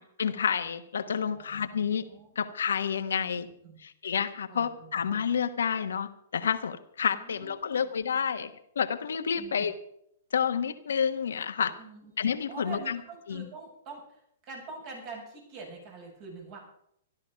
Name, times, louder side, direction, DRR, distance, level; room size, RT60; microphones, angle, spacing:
voice 1, 0.0-2.0 2.3-3.5 3.8-8.5 8.7-9.7 10.3-11.7 12.2-13.0 13.3-13.5, left 7 dB, 80° left, 8 dB, 1.3 m, -29 dB
voice 2, 1.2-2.3 3.2-3.8 4.5-5.0 7.1-7.9 9.4-9.7 11.8-12.1 12.5-14.2 14.5-16.6, right 4 dB, 45° right, 0 dB, 7.7 m, -45 dB
14.0 x 12.0 x 5.7 m, 0.74 s
hypercardioid pair, 125°, 0 cm